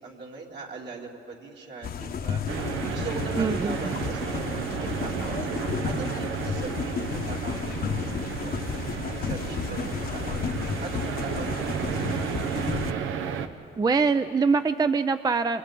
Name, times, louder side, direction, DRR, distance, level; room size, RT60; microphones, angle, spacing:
voice 1, 0.0-5.4 5.8-12.6, right 4 dB, 60° right, -2 dB, 3.2 m, -41 dB
sound 1, 1.8-12.9, left 6 dB, 50° left, 0.9 m, -32 dB
sound 2, 2.5-13.5, right 7 dB, 85° right, 0.9 m, -32 dB
voice 2, 3.4-3.8 13.8-15.6, right 4 dB, 20° right, 10 dB, 0.4 m, -23 dB
29.0 x 26.5 x 3.8 m, 2.7 s
cardioid pair, 90°, 20 cm